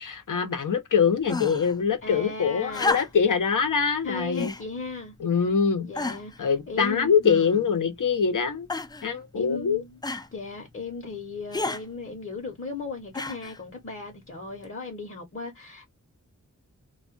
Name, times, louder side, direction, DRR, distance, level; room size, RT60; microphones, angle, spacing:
voice 1, 0.0-4.5 5.2-5.9 6.4-8.7 9.0-9.8, left 6 dB, 80° left, 0.8 m, -24 dB
sound 1, 1.3-1.8 2.7-3.4 4.3-4.7 5.4-5.5 5.9-6.4 7.2-7.8 8.7-9.1 10.0-10.3 11.5-11.8 13.1-13.6 14.6-14.7, left 2 dB, 15° left, 0.4 m, -31 dB
voice 2, 2.0-3.0 4.0-5.1 5.8-7.2 9.3-10.0 10.3-15.9, left 4 dB, 45° left, 0.9 m, -36 dB
2.4 x 2.2 x 2.4 m
wide cardioid pair, 60°, 31 cm